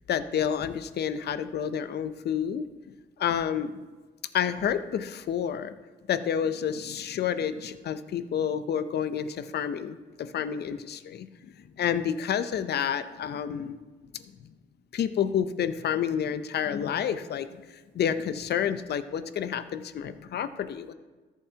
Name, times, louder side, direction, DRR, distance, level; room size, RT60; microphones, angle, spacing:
voice 1, 0.1-2.6 3.2-3.7 4.3-5.7 6.1-11.5 11.8-13.8 14.9-17.5 17.9-20.9, left 8 dB, 55° left, 12 dB, 0.6 m, -29 dB
13.5 x 7.2 x 2.8 m, 1.3 s
cardioid pair, 90°, 20 cm